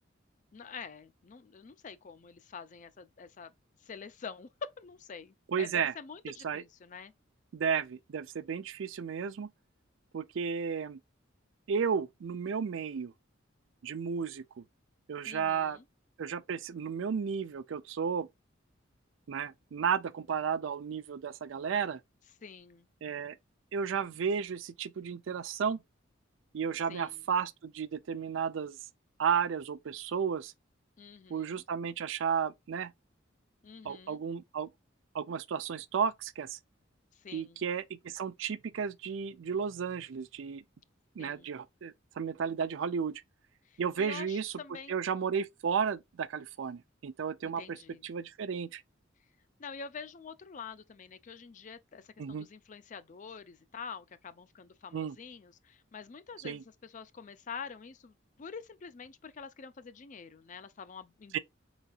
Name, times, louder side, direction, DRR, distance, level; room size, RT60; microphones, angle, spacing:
voice 1, 0.5-3.5 3.8-7.1 15.2-15.8 22.4-22.9 26.9-27.2 31.0-31.6 33.6-34.2 37.2-37.6 41.2-41.5 43.7-45.0 47.4-48.0 49.6-58.1 58.4-61.4, left 6 dB, 40° left, 0.4 m, -46 dB
voice 2, 5.5-5.9 6.2-6.6 7.5-9.5 10.1-11.0 11.7-13.1 13.8-14.6 15.1-15.8 16.2-18.3 19.3-22.0 23.0-23.4 23.7-25.8 26.5-28.8 29.2-30.5 31.3-32.9 33.8-34.7 35.1-36.6 37.3-40.6 41.2-43.2 43.8-44.5 44.9-47.8 48.0-48.8 52.2-52.5 54.9-55.2 56.4-56.6 61.3-61.4, right 6 dB, 70° right, 0.4 m, -33 dB
4.8 x 4.0 x 2.3 m
head